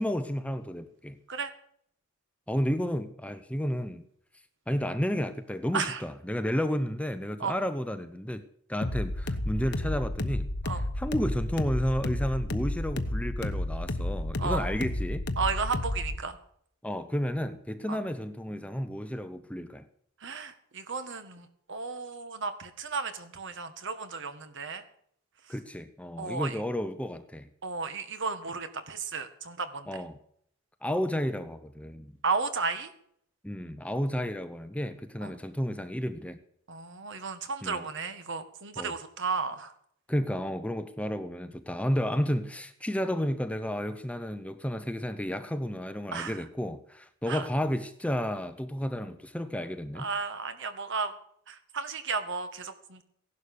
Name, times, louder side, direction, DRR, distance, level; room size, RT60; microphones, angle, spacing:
voice 1, 0.0-1.2 2.5-4.0 4.7-8.4 8.7-15.2 16.8-19.8 25.5-27.5 29.9-30.2 30.8-32.2 33.4-36.4 37.6-37.9 38.8-39.0 40.1-50.1, equal, 5° left, 0.8 m, -32 dB
sound 1, 8.8-16.2, left 1 dB, 55° left, 1.1 m, -32 dB
voice 2, 15.4-16.4 17.9-18.0 20.2-24.8 26.2-26.6 27.6-29.9 32.2-32.9 35.2-35.3 36.7-39.7 46.1-46.4 47.3-47.5 50.0-51.1 51.5-53.0, right 4 dB, 60° right, 1.8 m, -33 dB
16.5 x 11.5 x 6.8 m
head